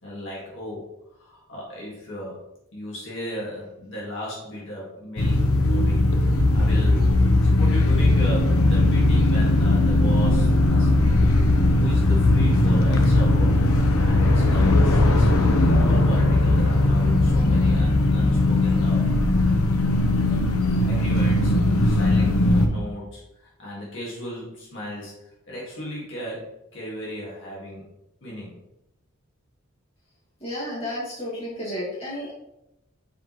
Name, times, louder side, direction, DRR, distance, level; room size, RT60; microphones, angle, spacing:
voice 1, 0.0-2.4 2.7-11.2 11.8-13.6 14.0-15.3 15.7-19.1 19.5-19.6 20.8-21.6 21.8-27.8 28.2-28.6, left 1 dB, 55° left, -5 dB, 2.0 m, -36 dB
sound 1, 5.2-22.7, left 2 dB, 80° left, 0.7 m, -19 dB
sound 2, 6.2-10.2, equal, 25° right, 2.4 m, -28 dB
voice 2, 30.4-32.3, left 1 dB, 30° left, -8 dB, 2.1 m, -32 dB
7.0 x 4.7 x 3.1 m, 0.86 s
head